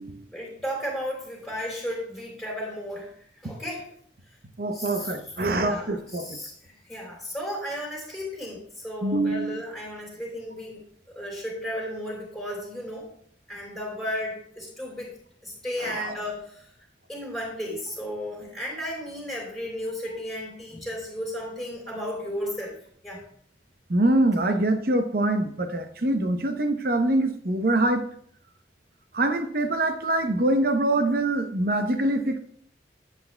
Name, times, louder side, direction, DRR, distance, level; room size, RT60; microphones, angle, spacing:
voice 1, 0.3-3.1 3.4-3.9 4.7-5.1 5.6-10.8 11.1-13.1 13.5-15.1 15.4-16.7 17.1-22.7 23.0-23.2, equal, ahead, -3 dB, 3.3 m, -34 dB
voice 2, 4.6-6.3 9.0-9.6 15.8-16.1 23.9-28.0 29.1-32.4, right 2 dB, 50° right, 7 dB, 0.8 m, -24 dB
12.5 x 8.1 x 2.3 m, 0.64 s
head